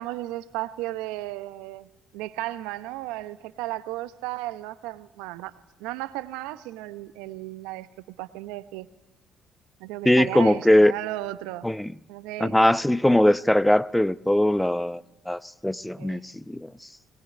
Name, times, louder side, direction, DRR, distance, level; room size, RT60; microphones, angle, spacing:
voice 1, 0.0-1.9 2.1-5.5 5.8-7.9 8.2-8.9 9.8-11.7 12.1-12.6 16.0-16.2, right 16 dB, 80° right, 0.9 m, -34 dB
voice 2, 10.0-10.9 11.6-11.9 12.4-16.7, left 1 dB, 5° left, 0.7 m, -21 dB
21.5 x 20.5 x 10.0 m
hypercardioid pair, 55°, 0 cm